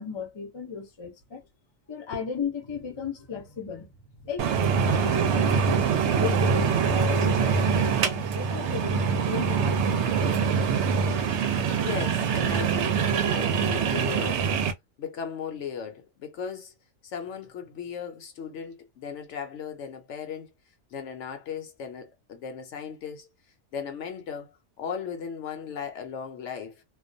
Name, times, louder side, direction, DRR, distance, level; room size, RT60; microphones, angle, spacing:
voice 1, 0.0-1.4 1.9-3.9 4.2-4.5 4.8-10.2, left 6 dB, 30° left, 0.5 m, -35 dB
sound 1, 4.4-14.7, right 6 dB, 65° right, 0.8 m, -24 dB
voice 2, 11.7-14.5 15.0-16.7 17.0-20.5 20.9-23.3 23.7-26.8, left 7 dB, 70° left, 0.9 m, -37 dB
2.3 x 2.1 x 2.5 m
omnidirectional pair, 1.4 m